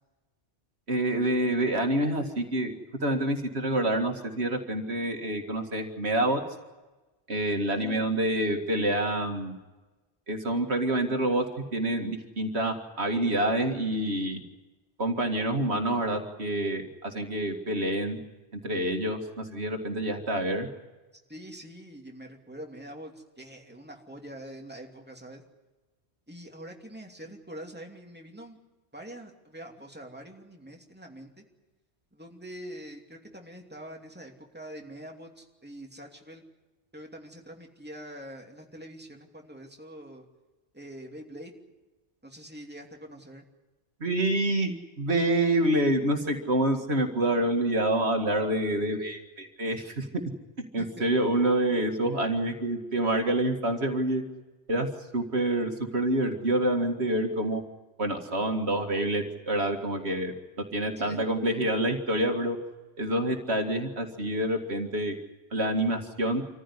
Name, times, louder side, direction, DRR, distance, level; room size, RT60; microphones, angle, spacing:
voice 1, 0.9-2.7 3.0-6.4 7.3-9.6 10.3-11.4 11.7-14.4 15.0-18.2 18.5-20.7 44.0-50.1 50.7-54.2 54.7-54.9 55.1-57.6 58.0-60.3 60.7-62.6 63.0-65.2 65.5-66.4, right 1 dB, 65° right, 4 dB, 2.3 m, -27 dB
voice 2, 7.7-8.1 21.3-25.4 26.3-28.6 28.9-31.4 32.1-36.4 36.9-40.3 40.7-41.5 42.2-43.4 50.8-51.1 61.0-61.3, right 1 dB, 10° right, 1 dB, 2.8 m, -44 dB
26.5 x 15.0 x 9.9 m, 1.2 s
omnidirectional pair, 1.2 m